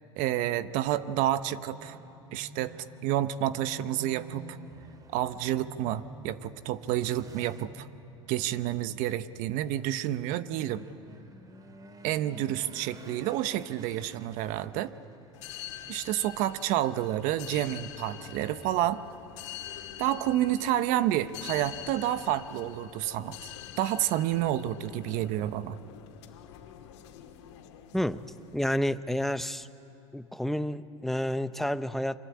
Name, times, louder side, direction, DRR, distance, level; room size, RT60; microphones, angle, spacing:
voice 1, 0.2-2.0 2.3-2.7 3.0-4.6 5.1-7.9 8.3-10.8 12.0-14.9 15.9-19.0 20.0-23.5 23.8-25.8, right 13 dB, 65° right, 14 dB, 0.9 m, -29 dB
sound 1, 0.8-18.1, right 2 dB, 25° right, 2.4 m, -50 dB
sound 2, 15.3-28.8, left 11 dB, 80° left, 2.4 m, -45 dB
voice 2, 27.9-28.2 28.5-29.7 30.1-32.2, equal, ahead, 12 dB, 0.8 m, -30 dB
25.5 x 23.0 x 8.6 m, 3.0 s
supercardioid pair, 95°, 15 cm